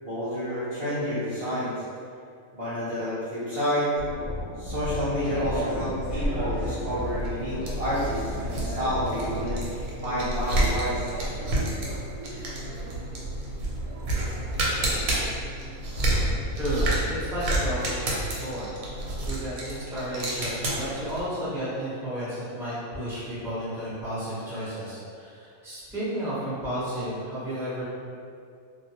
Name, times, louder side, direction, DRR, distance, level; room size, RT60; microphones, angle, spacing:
voice 1, 0.0-1.8 2.5-3.9 4.6-9.6 10.0-11.1, equal, 50° right, -13 dB, 0.4 m, -29 dB
sound 1, 4.0-9.7, left 1 dB, 65° left, 0.7 m, -35 dB
sound 2, 5.2-21.3, right 1 dB, 90° right, 1.0 m, -30 dB
voice 2, 16.6-16.9 17.2-18.7 19.2-27.8, equal, 5° right, -11 dB, 0.6 m, -32 dB
2.3 x 2.1 x 2.7 m, 2.3 s
omnidirectional pair, 1.4 m